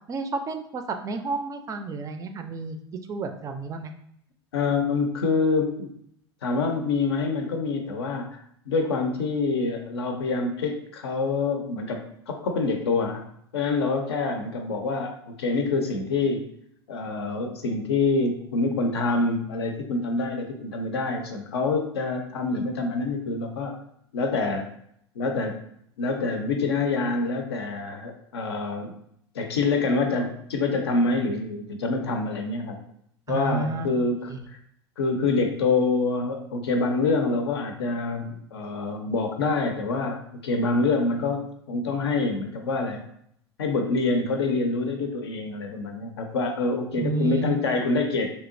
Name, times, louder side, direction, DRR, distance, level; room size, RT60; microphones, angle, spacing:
voice 1, 0.1-2.8 3.1-3.9 33.3-33.9 34.3-34.4 47.0-47.6, right 4 dB, 25° right, 6 dB, 0.4 m, -30 dB
voice 2, 4.5-5.9 6.4-8.4 8.7-12.0 12.3-13.2 13.5-16.4 16.9-23.7 24.1-24.6 25.2-25.6 26.0-28.9 29.3-32.8 33.3-34.4 35.0-41.4 41.7-43.0 43.6-48.3, left 3 dB, 70° left, 4 dB, 0.5 m, -26 dB
3.3 x 2.8 x 2.5 m, 0.71 s
figure-of-eight pair, 80°, 14 cm